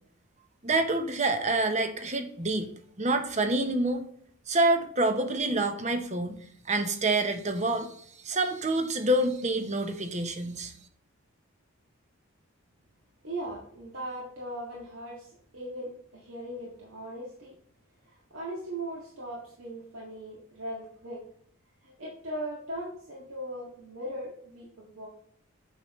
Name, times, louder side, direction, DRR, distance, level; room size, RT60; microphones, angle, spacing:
voice 1, 0.6-2.7 3.0-4.0 4.5-6.4 6.7-7.9 8.2-10.7, right 2 dB, 30° right, 7 dB, 0.8 m, -27 dB
voice 2, 13.2-17.5 18.1-21.2 21.8-25.1, right 1 dB, 65° right, -4 dB, 1.9 m, -39 dB
8.3 x 5.7 x 3.1 m, 0.63 s
head